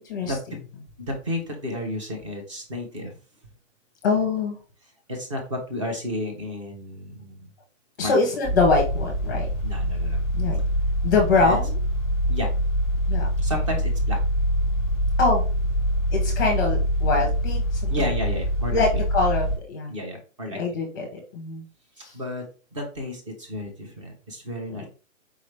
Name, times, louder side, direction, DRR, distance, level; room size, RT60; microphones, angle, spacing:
voice 1, 1.0-3.1 5.1-7.5 8.0-8.1 9.6-10.2 11.4-11.6 12.3-12.5 13.4-14.2 17.9-18.8 19.9-20.6 22.1-22.4 22.7-24.9, left 1 dB, 25° right, 3 dB, 0.9 m, -32 dB
voice 2, 4.0-4.6 8.0-9.5 10.3-10.6 11.0-11.8 13.1-13.3 15.2-15.4 16.1-18.1 18.7-19.9 20.5-21.6 22.0-22.1 24.7-24.9, left 4 dB, 15° left, 0 dB, 0.8 m, -24 dB
sound 1, 8.4-19.6, equal, 5° right, 1.3 m, -24 dB
4.8 x 2.9 x 3.2 m, 0.36 s
hypercardioid pair, 175°, 39 cm